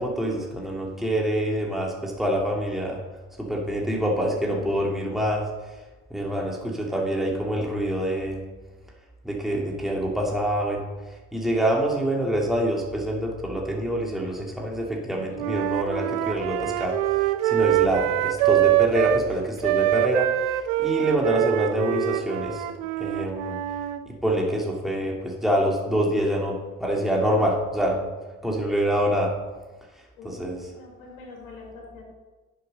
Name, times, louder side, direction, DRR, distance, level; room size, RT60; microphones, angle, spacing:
voice 1, 0.0-3.0 3.4-5.5 6.1-8.5 9.2-10.8 11.3-17.0 17.4-22.6 23.0-23.6 24.2-28.1 28.4-29.4 30.2-30.6, equal, ahead, -1 dB, 2.7 m, -26 dB
voice 2, 4.3-4.8 30.2-32.0, left 4 dB, 80° left, -1 dB, 2.7 m, -44 dB
Wind instrument woodwind instrument, 15.4-19.3 19.6-24.0, right 13 dB, 75° right, 0.7 m, -24 dB
11.0 x 6.9 x 5.4 m, 1.2 s
figure-of-eight pair, 45°, 39 cm